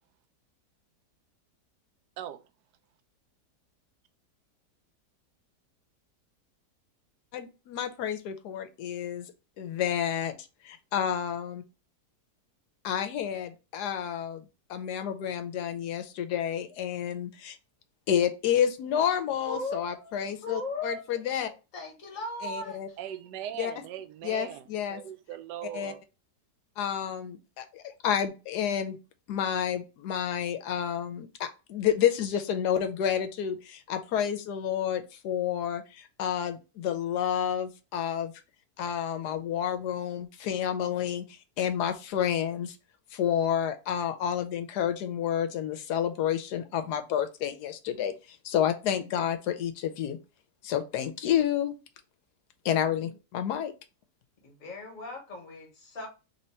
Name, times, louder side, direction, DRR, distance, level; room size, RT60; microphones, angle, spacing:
voice 1, 7.3-9.3 9.6-10.4 10.6-11.6 12.8-17.6 18.1-21.5 22.4-22.9 23.6-23.7 24.2-25.0 25.7-25.9 26.8-29.0 29.3-38.3 38.8-41.2 41.6-42.8 43.1-50.2 50.6-51.8 52.6-53.7, left 9 dB, 75° left, 1.2 m, -30 dB
voice 2, 19.4-23.0 52.9-53.1 54.4-56.1, left 2 dB, 55° left, 1.6 m, -38 dB
voice 3, 23.0-26.0, right 10 dB, 85° right, 1.2 m, -39 dB
3.3 x 2.9 x 4.2 m
omnidirectional pair, 1.8 m